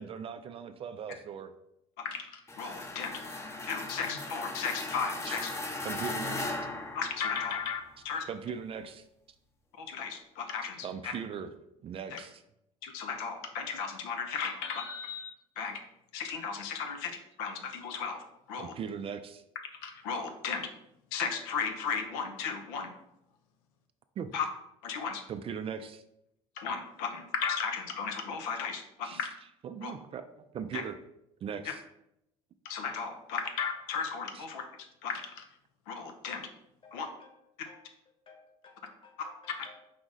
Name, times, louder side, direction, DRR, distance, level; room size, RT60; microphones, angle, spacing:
voice 1, 0.0-1.5 5.3-6.6 8.2-9.1 10.6-11.5 11.8-12.4 18.6-19.4 24.2-24.3 25.3-26.0 29.0-29.2 29.6-31.0 31.4-31.8 34.3-34.5, right 7 dB, 40° right, 0.4 m, -39 dB
voice 2, 2.0-3.2 3.7-5.5 6.9-8.2 9.8-11.1 12.1-12.2 12.8-15.8 16.1-17.1 17.4-18.2 18.5-18.7 19.8-20.7 21.1-22.9 24.3-24.5 24.8-25.2 26.6-29.3 29.8-29.9 30.7-30.8 32.6-34.6 35.0-35.4 35.9-36.5 36.9-37.1, left 6 dB, 75° left, 0.6 m, -35 dB
sound 1, 2.5-7.7, left 2 dB, 20° left, 0.7 m, -38 dB
voice 3, 36.8-39.9, left 4 dB, 35° left, 1.1 m, -57 dB
5.0 x 2.4 x 3.9 m
hypercardioid pair, 70°, 15 cm